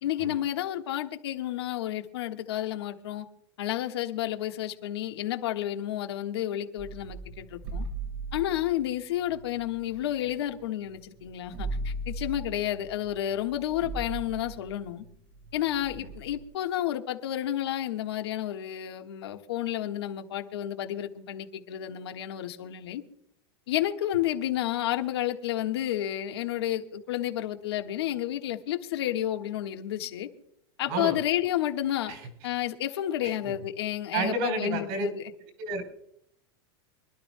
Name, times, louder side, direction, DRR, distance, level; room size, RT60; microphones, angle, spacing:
voice 1, 0.0-3.2 3.6-7.8 8.3-15.0 15.5-23.0 23.7-30.3 30.8-32.1 32.4-35.2, left 12 dB, 85° left, 1.5 m, -31 dB
sound 1, 6.8-10.7 10.9-11.0 11.3-16.4, right 2 dB, 85° right, 2.9 m, -38 dB
voice 2, 30.9-31.2 32.1-32.2 33.2-33.5 34.1-35.1 35.6-35.8, right 2 dB, 55° right, 3.8 m, -30 dB
25.5 x 12.0 x 2.2 m
supercardioid pair, 165°, 13 cm